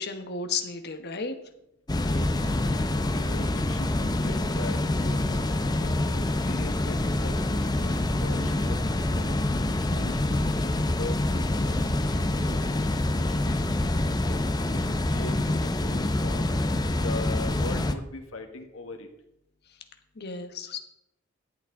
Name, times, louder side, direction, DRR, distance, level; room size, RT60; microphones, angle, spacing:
voice 1, 0.0-1.3 20.2-20.8, left 4 dB, 55° left, 7 dB, 1.2 m, -33 dB
sound 1, 1.9-17.9, left 1 dB, 20° left, 0.6 m, -26 dB
voice 2, 2.0-2.6 3.1-5.4 5.7-8.8 9.2-9.3 9.7-10.4 10.8-12.7 13.2-13.6 14.3-14.4 14.8-16.5 17.0-19.1, left 2 dB, 85° left, 4 dB, 1.6 m, -40 dB
13.0 x 8.5 x 3.7 m, 0.82 s
head